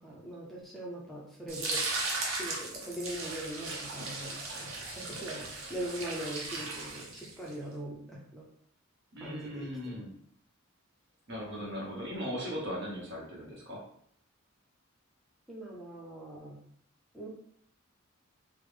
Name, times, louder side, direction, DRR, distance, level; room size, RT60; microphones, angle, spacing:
voice 1, 0.0-1.8 2.3-8.5 9.2-10.0 15.5-16.6 17.1-17.3, right 1 dB, ahead, -5 dB, 0.5 m, -41 dB
sound 1, 1.5-7.5, right 3 dB, 75° right, 0.7 m, -37 dB
voice 2, 9.1-10.1 11.3-13.8, equal, 60° right, -4 dB, 1.0 m, -38 dB
3.2 x 2.0 x 3.3 m, 0.67 s
head